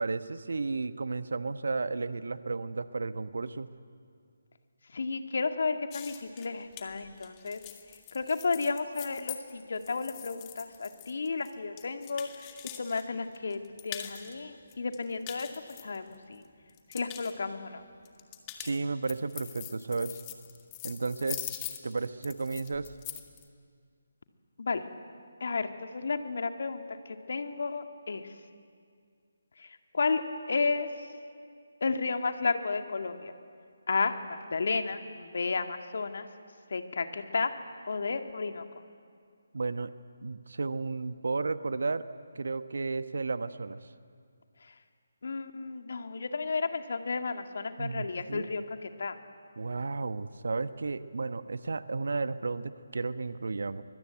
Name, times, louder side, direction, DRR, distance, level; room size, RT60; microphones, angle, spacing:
voice 1, 0.0-3.7 18.6-20.2 20.8-21.4 21.8-22.9 39.5-39.9 40.2-42.0 42.3-43.8 47.8-48.6 49.6-53.8, right 3 dB, 60° right, 12 dB, 1.1 m, -33 dB
voice 2, 4.9-7.6 8.1-15.5 15.8-16.4 16.9-17.8 24.6-24.8 25.4-28.3 29.6-30.2 30.5-31.1 31.8-33.3 33.9-36.3 36.7-37.5 37.9-38.6 44.6-44.7 45.2-49.2, left 4 dB, 55° left, 7 dB, 2.0 m, -32 dB
sound 1, 5.9-13.0 13.3-14.3 14.7-16.4 16.7-17.3 18.1-23.4, left 13 dB, 20° left, 1.8 m, -43 dB
23.5 x 22.5 x 9.3 m, 2.2 s
figure-of-eight pair, 150°, 0 cm